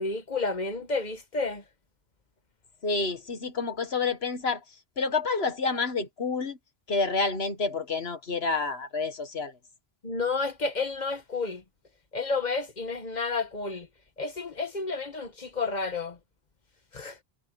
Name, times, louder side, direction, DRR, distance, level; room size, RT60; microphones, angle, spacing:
voice 1, 0.0-1.6 10.0-11.6 12.1-13.9 14.2-16.2 16.9-17.2, left 3 dB, 45° left, 1.6 m, -31 dB
voice 2, 2.8-4.6 5.0-6.6 6.9-9.6, left 4 dB, 75° left, 2.0 m, -29 dB
omnidirectional pair, 1.0 m